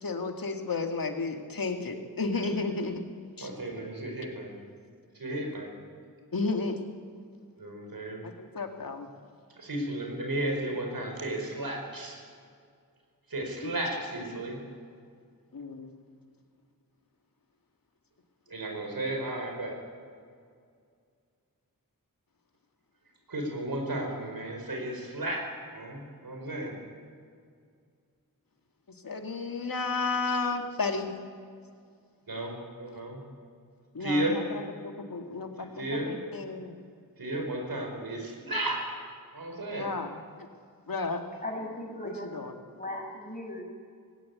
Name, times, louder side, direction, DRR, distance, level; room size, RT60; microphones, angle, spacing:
voice 1, 0.0-3.0 3.4-3.5 6.3-6.8 8.2-9.1 13.6-13.7 15.5-15.9 29.0-31.1 33.9-36.7 39.7-40.2 40.9-41.4 42.0-42.6, left 3 dB, 70° left, 4 dB, 2.1 m, -33 dB
voice 2, 3.4-4.5 5.2-5.7 7.6-8.2 9.6-12.2 13.3-14.6 18.5-19.7 23.3-26.7 32.3-33.2 34.0-34.4 35.6-36.1 37.2-38.8 39.3-39.9, right 1 dB, 80° right, 2 dB, 4.8 m, -33 dB
voice 3, 41.4-43.6, left 1 dB, 25° left, -1 dB, 6.3 m, -38 dB
19.5 x 17.0 x 9.5 m, 2.2 s
wide cardioid pair, 80°, 35 cm